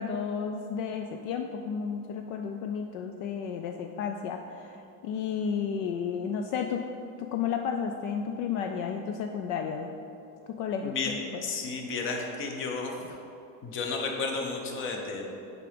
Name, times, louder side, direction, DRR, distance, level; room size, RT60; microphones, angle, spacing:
voice 1, 0.0-6.8 7.2-9.9 10.5-11.4 13.0-13.2, left 7 dB, 60° left, 4 dB, 0.5 m, -32 dB
voice 2, 10.8-11.1 11.4-12.9 13.6-15.3, left 4 dB, 30° left, 2 dB, 0.7 m, -32 dB
6.8 x 4.9 x 5.0 m, 2.8 s
cardioid pair, 170°, 44 cm